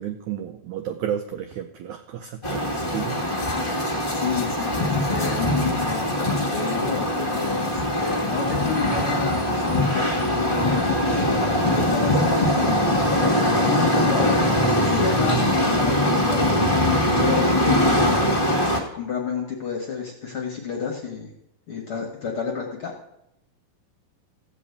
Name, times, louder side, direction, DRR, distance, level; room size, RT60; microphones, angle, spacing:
voice 1, 0.0-3.8, right 9 dB, 85° right, 7 dB, 1.7 m, -32 dB
sound 1, 2.4-18.8, left 1 dB, 20° left, 1.3 m, -22 dB
voice 2, 4.1-12.8 13.3-16.8 17.0-18.3 18.6-21.3 21.7-22.9, left 6 dB, 55° left, 1 dB, 1.6 m, -30 dB
15.0 x 5.3 x 8.3 m, 0.80 s
omnidirectional pair, 4.4 m